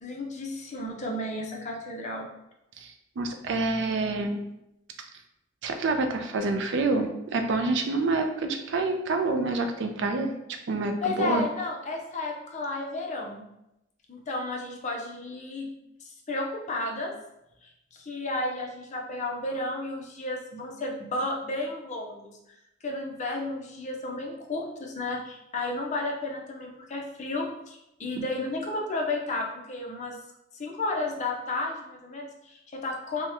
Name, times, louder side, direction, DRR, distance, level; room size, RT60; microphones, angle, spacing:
voice 1, 0.0-2.3 11.0-13.4 14.1-15.7 16.0-17.1 17.6-22.3 22.8-30.2 30.5-33.3, left 2 dB, 35° left, 0 dB, 0.5 m, -32 dB
voice 2, 2.8-4.4 5.6-10.3 10.7-11.5, right 3 dB, 65° right, 6 dB, 0.4 m, -27 dB
2.8 x 2.1 x 3.4 m, 0.86 s
head